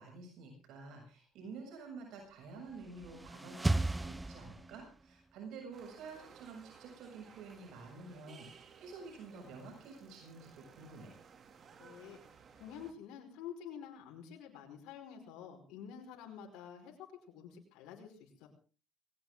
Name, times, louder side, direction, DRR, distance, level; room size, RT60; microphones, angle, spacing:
voice 1, 0.0-11.2, right 4 dB, 75° right, 2 dB, 7.3 m, -50 dB
sound 1, 2.7-5.1, right 2 dB, 15° right, 0.7 m, -35 dB
sound 2, 5.7-12.9, right 6 dB, 45° right, 2.6 m, -58 dB
voice 2, 11.8-12.2 12.6-18.5, left 8 dB, 85° left, 0 dB, 5.0 m, -49 dB
20.5 x 18.0 x 3.8 m, 0.38 s
cardioid pair, 95°, 0 cm